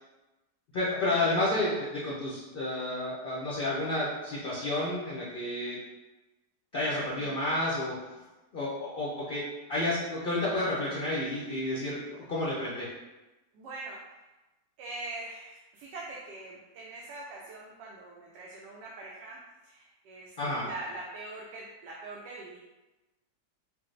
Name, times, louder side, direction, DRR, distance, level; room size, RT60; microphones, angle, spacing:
voice 1, 0.7-5.8 6.7-8.0 8.5-9.4 9.7-12.9 20.4-20.7, left 1 dB, 70° left, -6 dB, 0.5 m, -30 dB
voice 2, 13.5-14.0 14.8-19.4 19.6-22.6, right 2 dB, 90° right, -3 dB, 1.2 m, -43 dB
4.8 x 2.0 x 3.2 m, 1.1 s
omnidirectional pair, 1.8 m